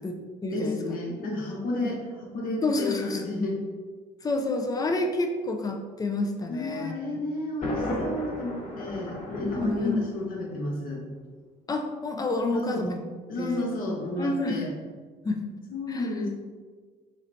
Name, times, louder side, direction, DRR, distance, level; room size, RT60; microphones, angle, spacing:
voice 1, 0.0-0.8 1.8-1.9 2.6-3.3 4.2-7.2 9.4-10.0 11.7-13.0 13.4-13.6 14.1-14.7 15.2-15.5 15.9-16.1, left 2 dB, 20° left, 3 dB, 0.4 m, -29 dB
voice 2, 0.5-3.6 6.5-11.0 12.5-12.9 13.3-14.7 15.7-16.3, left 2 dB, 55° left, -1 dB, 0.9 m, -31 dB
Thunder, 7.6-10.6, left 1 dB, 40° left, 1.1 m, -34 dB
4.1 x 3.1 x 2.6 m, 1.5 s
cardioid pair, 110°, 17 cm